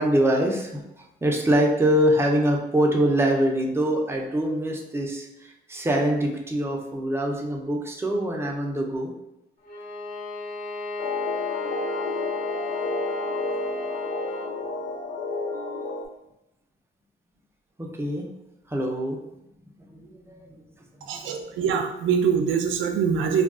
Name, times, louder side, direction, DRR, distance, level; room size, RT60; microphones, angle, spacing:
voice 1, 0.0-9.1 13.5-13.6 17.8-18.3 18.7-19.2 19.9-20.7 21.1-21.5, right 1 dB, 10° right, 0 dB, 0.6 m, -24 dB
Bowed string instrument, 9.6-14.6, left 2 dB, 40° left, 1.0 m, -34 dB
sound 1, 11.0-16.1, left 3 dB, 70° left, 0.4 m, -31 dB
voice 2, 21.1-23.4, right 7 dB, 75° right, 4 dB, 0.5 m, -24 dB
2.3 x 2.3 x 3.6 m, 0.89 s
cardioid pair, 90°, 20 cm